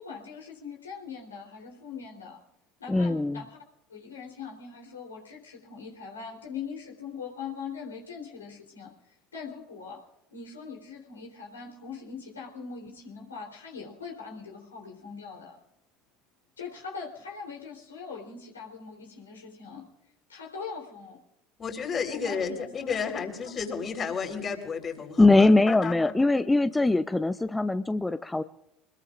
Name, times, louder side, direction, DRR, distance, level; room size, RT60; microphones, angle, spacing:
voice 1, 0.0-2.4 2.8-3.6 3.9-10.0 10.3-15.6 16.6-19.9 20.3-21.2 22.1-23.5, left 5 dB, 85° left, 0 dB, 3.6 m, -41 dB
voice 2, 2.9-3.4 25.2-28.4, left 2 dB, 10° left, 12 dB, 0.6 m, -22 dB
voice 3, 21.6-26.1, left 6 dB, 40° left, 4 dB, 4.1 m, -32 dB
25.0 x 21.0 x 2.5 m, 0.86 s
hypercardioid pair, 65°, 0 cm